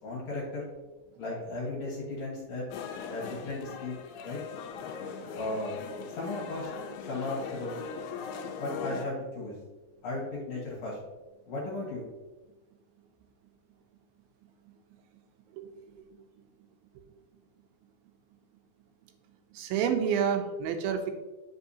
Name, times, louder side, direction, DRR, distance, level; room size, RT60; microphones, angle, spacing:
voice 1, 0.0-0.7 1.2-2.6 3.1-4.0 4.2-4.4 5.3-5.8 6.2-6.7 7.1-7.8 8.6-9.6 10.0-11.0 11.5-12.1, left 2 dB, 55° left, -5 dB, 2.3 m, -35 dB
sound 1, 2.7-9.1, left 6 dB, 85° left, 2.3 m, -40 dB
voice 2, 15.5-16.2 19.5-21.1, right 7 dB, 90° right, 5 dB, 2.5 m, -30 dB
8.1 x 5.5 x 2.7 m, 1.2 s
omnidirectional pair, 4.1 m